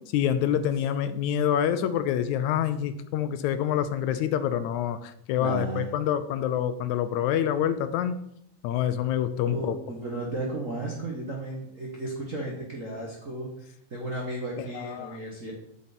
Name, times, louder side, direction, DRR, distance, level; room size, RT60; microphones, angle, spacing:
voice 1, 0.1-8.2 8.6-9.8 14.7-15.2, left 10 dB, 80° left, 12 dB, 2.0 m, -26 dB
voice 2, 5.4-5.8 9.5-15.5, right 2 dB, 45° right, -3 dB, 1.0 m, -34 dB
7.7 x 7.3 x 4.1 m, 0.74 s
omnidirectional pair, 3.3 m